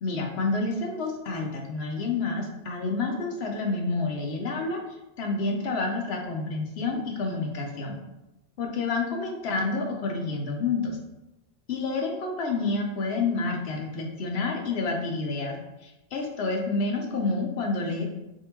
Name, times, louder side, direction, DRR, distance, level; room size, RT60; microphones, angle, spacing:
voice 1, 0.0-4.8 5.2-8.0 8.6-11.0 11.7-18.0, left 3 dB, 70° left, 1 dB, 0.9 m, -29 dB
3.5 x 2.6 x 2.9 m, 0.97 s
omnidirectional pair, 1.1 m